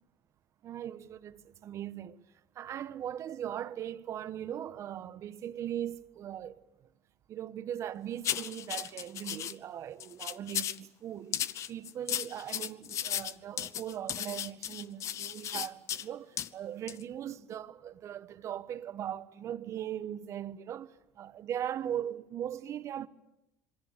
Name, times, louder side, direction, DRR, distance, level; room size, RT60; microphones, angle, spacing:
voice 1, 0.6-2.2 2.5-6.6 7.3-23.1, right 10 dB, 50° right, 1.2 m, -39 dB
sound 1, 8.2-9.5 10.0-10.8 11.3-16.0 16.4-16.5 16.9-17.0, left 10 dB, 55° left, 0.9 m, -35 dB
27.0 x 23.0 x 6.8 m
supercardioid pair, 85°, 6 cm